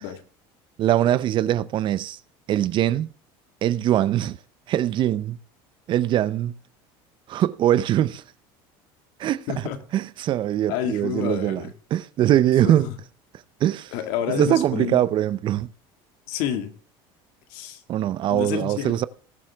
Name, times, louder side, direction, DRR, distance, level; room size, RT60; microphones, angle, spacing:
voice 1, 0.8-2.2 2.5-3.1 3.6-4.4 4.7-5.4 5.9-6.5 7.3-8.2 9.2-12.9 13.6-13.9 14.4-15.7 17.9-19.1, right 12 dB, 45° right, 0.6 m, -22 dB
voice 2, 9.5-9.8 10.7-11.7 12.6-12.9 13.9-15.0 16.3-16.7 17.5-17.8 18.3-19.0, left 9 dB, 75° left, 2.0 m, -29 dB
19.0 x 7.4 x 3.5 m
cardioid pair, 135°, 12 cm